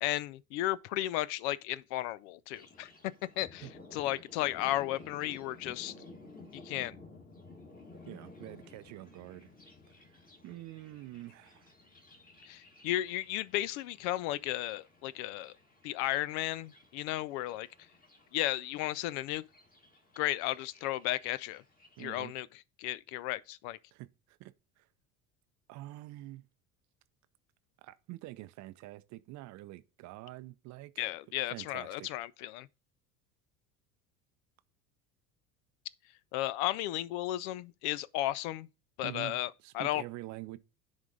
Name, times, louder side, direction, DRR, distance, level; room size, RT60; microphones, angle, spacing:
voice 1, 0.0-2.9 3.4-5.9 6.6-6.9 12.5-15.5 15.8-17.7 18.3-19.4 20.2-21.6 22.0-22.5 22.8-23.8 31.0-32.7 36.3-38.7 39.0-40.0, left 15 dB, 55° left, 0.5 m, -34 dB
Thunder, 2.5-22.1, left 2 dB, 20° left, 1.9 m, -55 dB
voice 2, 8.1-9.5 10.1-11.7 22.0-22.3 23.9-24.9 25.7-26.5 27.8-31.0 31.5-32.1 39.0-40.6, right 17 dB, 45° right, 0.5 m, -46 dB
10.5 x 3.5 x 3.8 m
figure-of-eight pair, 65°, 42 cm